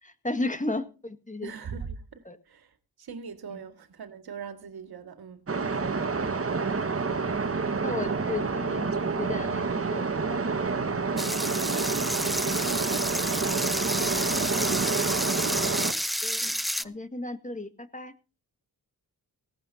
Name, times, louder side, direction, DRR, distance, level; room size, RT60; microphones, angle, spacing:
voice 1, 0.0-1.5 2.3-2.4 3.5-3.6 7.8-10.4 11.2-11.4 16.2-16.4 16.8-18.1, left 2 dB, 20° left, 1.9 m, -34 dB
voice 2, 1.4-2.7 3.0-6.2 11.1-14.7 16.4-17.0, right 6 dB, 70° right, 2.1 m, -42 dB
sound 1, 5.5-15.9, right 4 dB, 35° right, 1.6 m, -28 dB
sound 2, 11.2-16.8, equal, ahead, 0.6 m, -30 dB
18.0 x 16.5 x 2.8 m
cardioid pair, 55°, 38 cm